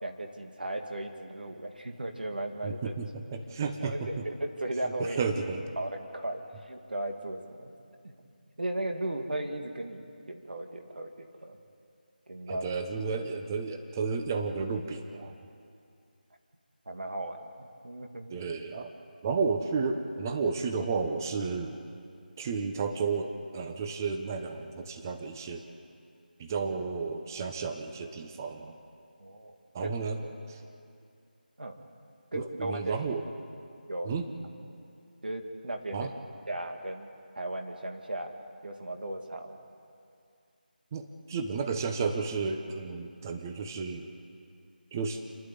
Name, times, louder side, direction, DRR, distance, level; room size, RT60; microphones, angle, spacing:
voice 1, 0.0-2.9 3.6-5.2 5.8-7.7 8.0-8.1 8.6-11.6 12.3-12.7 16.9-18.3 29.2-29.5 29.8-29.9 31.6-31.8 32.3-33.0 33.9-34.1 35.2-36.1 36.5-37.1 37.3-38.3 38.6-39.6, right 1 dB, 70° right, 4 dB, 2.4 m, -36 dB
voice 2, 2.6-4.2 5.0-5.6 12.5-15.3 18.3-18.9 19.2-21.8 22.4-25.6 26.4-28.8 29.7-30.6 32.3-33.3 34.0-34.3 35.9-36.1 40.9-44.1 44.9-45.2, right 4 dB, 20° right, 6 dB, 1.1 m, -32 dB
30.0 x 11.5 x 8.4 m, 2.4 s
figure-of-eight pair, 165°, 5 cm